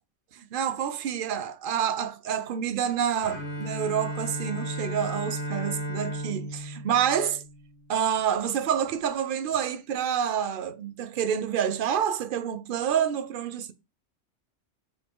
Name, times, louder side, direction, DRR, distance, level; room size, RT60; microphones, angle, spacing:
voice 1, 0.3-7.4 7.9-13.7, right 8 dB, 60° right, 0.6 m, -28 dB
Bowed string instrument, 3.2-8.1, equal, 45° left, 1.1 m, -35 dB
4.3 x 2.6 x 3.7 m
omnidirectional pair, 1.3 m